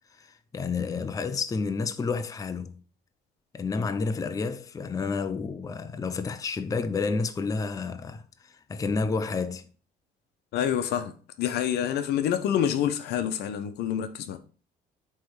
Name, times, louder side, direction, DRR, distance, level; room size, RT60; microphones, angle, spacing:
voice 1, 0.2-2.8 3.5-9.7, left 4 dB, 20° left, 0.5 m, -30 dB
voice 2, 10.5-14.4, left 9 dB, 75° left, 0.9 m, -27 dB
8.4 x 3.2 x 4.6 m
cardioid pair, 110°, 17 cm